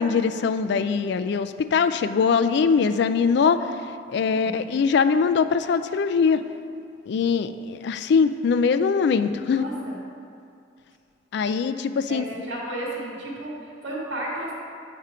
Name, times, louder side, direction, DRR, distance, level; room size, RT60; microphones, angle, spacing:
voice 1, 0.0-3.7 4.1-6.4 7.1-9.6 11.3-12.2, left 5 dB, 65° left, 11 dB, 0.3 m, -22 dB
voice 2, 4.3-4.6 9.4-10.0 12.1-14.5, right 1 dB, 85° right, -4 dB, 1.7 m, -33 dB
8.1 x 4.4 x 4.9 m, 2.4 s
head